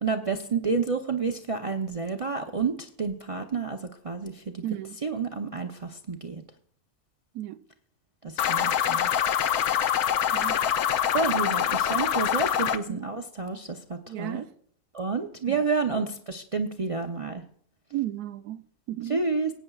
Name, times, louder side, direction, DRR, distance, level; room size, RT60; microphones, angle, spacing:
voice 1, 0.0-3.8 4.0-4.6 5.0-6.4 8.2-9.5 11.1-14.4 14.9-17.4 19.1-19.5, right 4 dB, 65° right, 0.3 m, -30 dB
voice 2, 4.6-5.0 7.3-7.6 10.3-10.6 12.9-13.0 14.1-14.5 15.5-15.6 16.0-16.1 17.9-19.2, right 13 dB, 85° right, 1.2 m, -34 dB
sound 1, 8.4-12.8, left 9 dB, 80° left, 1.2 m, -25 dB
19.0 x 8.9 x 2.3 m
omnidirectional pair, 1.6 m